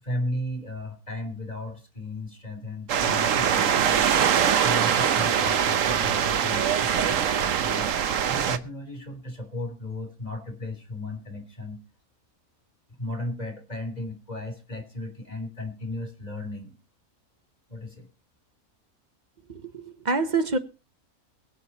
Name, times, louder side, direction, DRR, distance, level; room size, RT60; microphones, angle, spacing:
voice 1, 0.0-4.1 4.6-7.9 8.3-11.8 13.0-16.8 17.7-18.1, left 2 dB, 30° left, 3.5 m, -35 dB
sound 1, 2.9-8.6, right 8 dB, 65° right, 1.2 m, -23 dB
voice 2, 19.5-20.6, right 3 dB, 35° right, 1.2 m, -26 dB
23.0 x 7.8 x 4.2 m
omnidirectional pair, 1.5 m